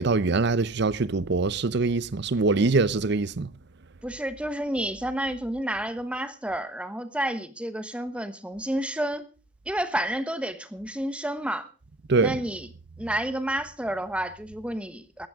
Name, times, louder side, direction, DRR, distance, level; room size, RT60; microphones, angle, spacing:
voice 1, 0.0-3.5 12.1-12.4, right 3 dB, 60° right, 0.7 m, -23 dB
voice 2, 4.0-9.2 9.7-11.7 12.2-12.7 13.0-15.3, right 1 dB, 5° right, 1.1 m, -30 dB
18.0 x 14.0 x 3.6 m
head